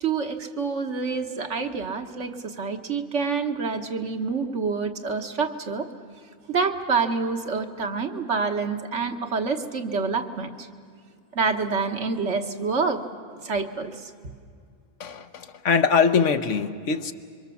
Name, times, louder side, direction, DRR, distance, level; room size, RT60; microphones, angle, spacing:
voice 1, 0.0-5.9 6.5-10.7 11.3-13.0 13.3-14.1, right 4 dB, 60° right, 5 dB, 1.6 m, -27 dB
voice 2, 15.0-17.1, left 6 dB, 65° left, 9 dB, 1.2 m, -22 dB
27.0 x 24.0 x 7.1 m, 2.2 s
omnidirectional pair, 1.4 m